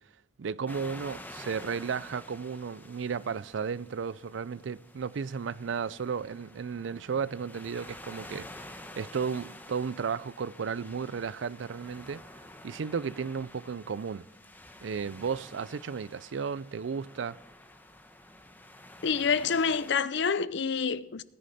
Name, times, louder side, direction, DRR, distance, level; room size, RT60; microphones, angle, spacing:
voice 1, 0.4-12.2 12.6-14.3 14.8-17.4, right 6 dB, 90° right, 0.4 m, -34 dB
sound 1, 0.7-20.0, left 1 dB, 10° left, 1.1 m, -49 dB
voice 2, 19.0-21.2, left 5 dB, 70° left, 0.6 m, -27 dB
19.0 x 9.9 x 4.2 m
head